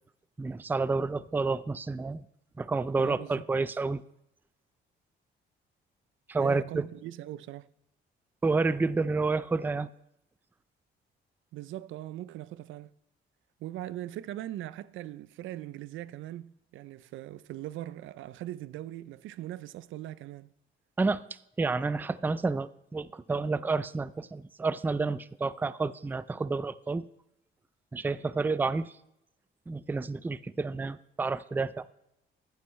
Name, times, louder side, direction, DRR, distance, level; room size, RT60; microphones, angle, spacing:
voice 1, 0.4-2.2 2.6-4.0 6.3-6.8 8.4-9.9 21.0-21.2 21.6-27.0 27.9-28.9 29.7-31.9, right 3 dB, 10° right, 0.3 m, -29 dB
voice 2, 3.0-3.5 6.4-7.7 11.5-12.9 13.6-20.5, right 14 dB, 80° right, 0.4 m, -40 dB
14.5 x 9.3 x 3.1 m
cardioid pair, 90°, 20 cm